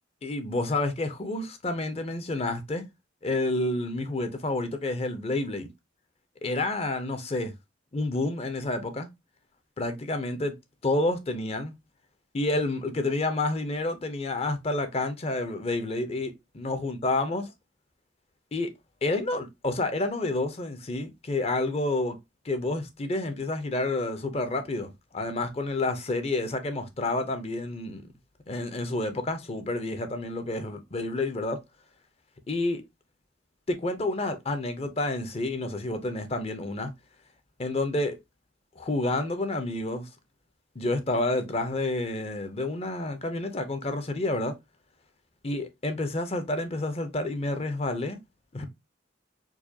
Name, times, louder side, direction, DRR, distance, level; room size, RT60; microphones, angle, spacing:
voice 1, 0.2-2.8 3.2-5.7 6.4-7.5 7.9-9.1 9.8-10.6 10.8-11.7 12.3-17.4 18.5-18.7 19.0-22.2 22.4-28.0 28.5-31.6 32.5-32.8 33.7-36.9 37.6-38.2 38.8-40.1 40.8-44.5 45.4-48.2 48.5-48.7, left 2 dB, 30° left, 0.5 m, -29 dB
4.7 x 2.2 x 2.7 m
head